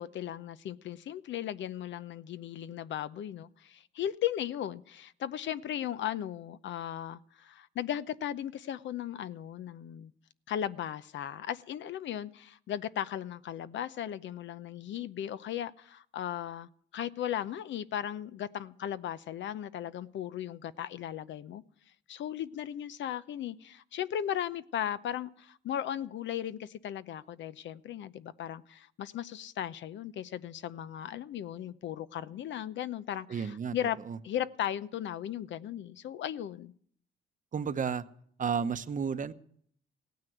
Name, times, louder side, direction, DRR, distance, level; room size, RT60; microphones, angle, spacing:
voice 1, 0.0-10.1 10.5-21.6 22.1-34.0 34.2-36.7, left 10 dB, 70° left, 0.7 m, -37 dB
voice 2, 33.3-33.8 34.1-34.2 37.5-38.0 38.4-39.3, right 6 dB, 40° right, 0.9 m, -32 dB
16.5 x 9.4 x 7.9 m
cardioid pair, 90°, 20 cm